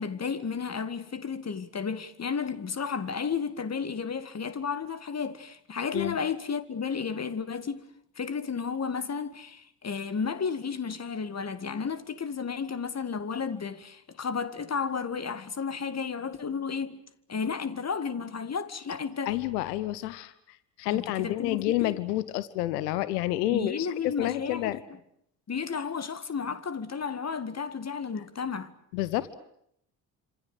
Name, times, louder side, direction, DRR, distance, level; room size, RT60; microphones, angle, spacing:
voice 1, 0.0-7.8 8.2-17.0 17.3-19.4 20.9-22.0 23.5-24.8 25.5-28.7, left 6 dB, 30° left, 2.0 m, -33 dB
voice 2, 19.3-24.8 28.9-29.3, left 15 dB, 75° left, 1.2 m, -29 dB
27.0 x 27.0 x 6.4 m
figure-of-eight pair, 50°, 49 cm